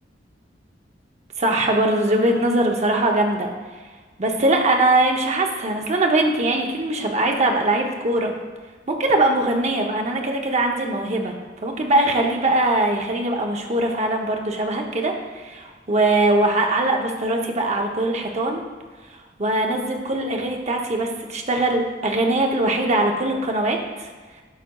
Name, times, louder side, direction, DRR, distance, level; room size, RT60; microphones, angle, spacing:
voice 1, 1.4-3.5 4.2-8.3 8.9-11.3 11.6-18.6 19.4-24.1, right 2 dB, 40° right, 2 dB, 0.7 m, -21 dB
11.0 x 4.1 x 2.3 m, 1.4 s
head